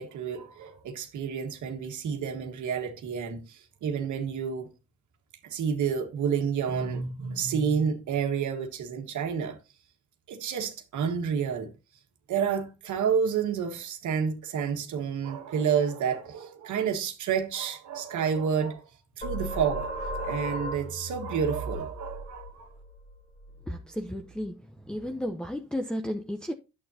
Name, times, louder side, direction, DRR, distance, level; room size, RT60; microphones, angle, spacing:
voice 1, 0.0-4.7 5.4-9.6 10.3-11.7 12.3-18.8 19.2-22.7, right 7 dB, 75° right, 1.5 m, -29 dB
sound 1, 19.2-24.5, equal, 30° left, 2.4 m, -37 dB
voice 2, 23.7-24.6 24.9-26.5, equal, 5° left, 0.7 m, -33 dB
9.3 x 8.2 x 2.8 m
cardioid pair, 90°, 30 cm